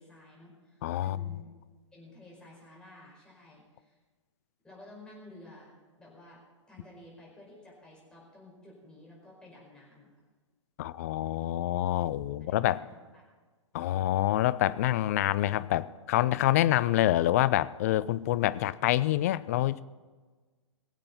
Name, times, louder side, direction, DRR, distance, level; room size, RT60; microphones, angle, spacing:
voice 1, 0.0-1.5 1.9-4.0 4.6-5.7 6.0-6.4 6.7-10.2 12.5-13.2, left 1 dB, 5° left, -4 dB, 4.9 m, -52 dB
voice 2, 0.8-1.3 10.8-12.8 13.7-19.9, left 14 dB, 30° left, 17 dB, 0.4 m, -27 dB
22.0 x 7.6 x 5.6 m, 1.4 s
figure-of-eight pair, 120°, 16 cm